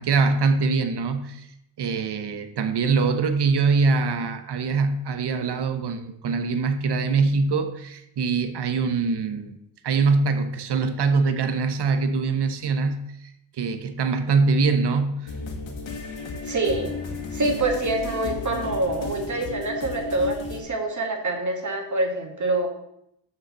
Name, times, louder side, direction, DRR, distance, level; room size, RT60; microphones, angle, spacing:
voice 1, 0.0-1.5 1.8-9.6 9.8-13.1 13.6-15.3, right 4 dB, 55° right, 9 dB, 1.1 m, -23 dB
sound 1, 15.3-20.6, left 3 dB, 65° left, 1.9 m, -33 dB
voice 2, 16.4-16.9 17.3-22.7, right 2 dB, 35° right, 3 dB, 2.1 m, -26 dB
7.0 x 6.4 x 6.2 m, 0.77 s
cardioid pair, 100°, 50 cm